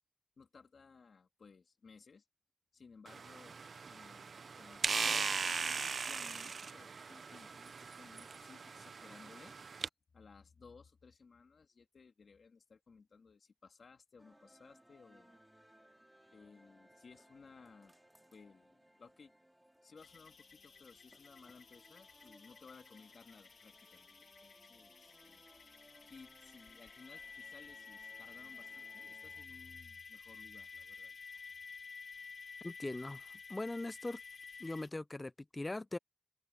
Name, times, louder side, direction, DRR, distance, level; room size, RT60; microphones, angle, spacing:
voice 1, 0.4-2.2 2.7-3.6 3.9-9.5 10.1-15.4 16.3-17.9 18.3-19.3 19.8-25.4 26.1-31.4, left 5 dB, 70° left, 2.4 m, -59 dB
sound 1, 3.1-9.9, right 5 dB, 70° right, 0.6 m, -39 dB
sound 2, 14.2-29.5, right 1 dB, 5° right, 2.7 m, -65 dB
sound 3, 20.0-34.9, left 5 dB, 90° left, 1.9 m, -53 dB
voice 2, 32.6-34.2 34.6-36.0, left 2 dB, 25° left, 0.5 m, -41 dB
open air
wide cardioid pair, 120°, 0 cm